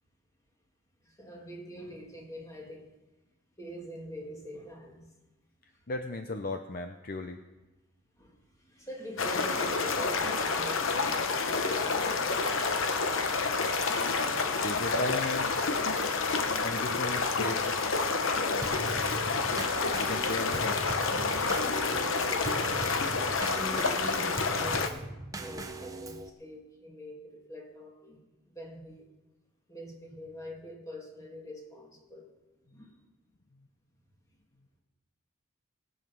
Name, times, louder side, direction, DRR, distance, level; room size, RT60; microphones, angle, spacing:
voice 1, 1.0-2.9 3.6-5.1 8.2-12.8 21.0-23.1 23.5-28.2 28.5-29.1 29.7-32.3 32.7-33.0, equal, 15° left, 2.1 m, -44 dB
voice 2, 5.9-7.4 14.6-15.5 16.6-17.6 20.0-20.8, left 2 dB, 45° left, 0.7 m, -35 dB
sound 1, 9.2-24.9, left 4 dB, 65° left, 1.0 m, -29 dB
Drum kit / Snare drum / Bass drum, 18.6-26.3, right 2 dB, 15° right, 0.7 m, -40 dB
19.5 x 7.3 x 5.9 m
head